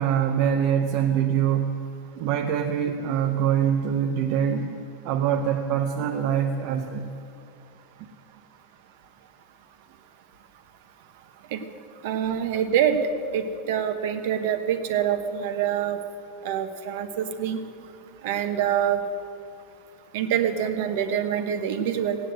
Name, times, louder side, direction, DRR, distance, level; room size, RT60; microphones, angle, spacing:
voice 1, 0.0-1.9 2.2-7.1, right 8 dB, 40° right, 4 dB, 0.7 m, -24 dB
voice 2, 12.0-13.0 13.3-16.0 16.4-17.6 18.2-19.0 20.1-22.2, right 9 dB, 55° right, 8 dB, 1.2 m, -25 dB
16.5 x 9.7 x 8.0 m, 2.6 s
supercardioid pair, 175°, 0 cm